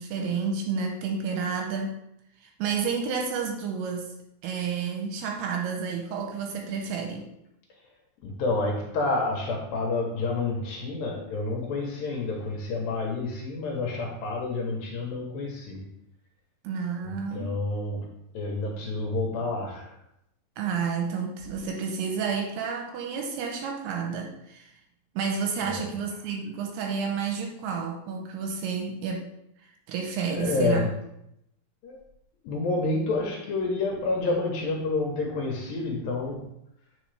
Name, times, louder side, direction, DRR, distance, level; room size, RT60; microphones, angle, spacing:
voice 1, 0.0-2.0 2.4-4.1 4.4-7.3 16.6-17.6 20.6-24.7 25.2-29.3 29.9-30.9, right 6 dB, 85° right, 3 dB, 2.6 m, -30 dB
voice 2, 8.2-15.8 17.1-18.1 18.3-20.0 25.6-25.9 30.3-30.9 31.8-32.0 32.4-36.4, left 3 dB, 75° left, 0 dB, 2.2 m, -29 dB
8.0 x 4.9 x 3.3 m, 0.80 s
omnidirectional pair, 5.0 m